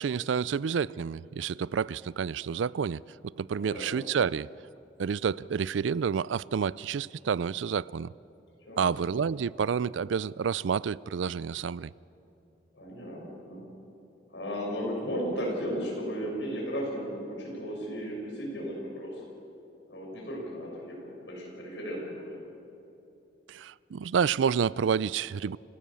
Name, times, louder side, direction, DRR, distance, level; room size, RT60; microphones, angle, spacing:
voice 1, 0.0-3.0 3.4-4.5 5.0-8.1 8.8-11.9 23.5-25.6, right 6 dB, 90° right, 0.4 m, -29 dB
voice 2, 3.5-4.0 8.6-8.9 12.7-13.6 14.3-19.1 19.9-22.3, equal, 80° left, 6.3 m, -35 dB
29.0 x 16.5 x 7.0 m
head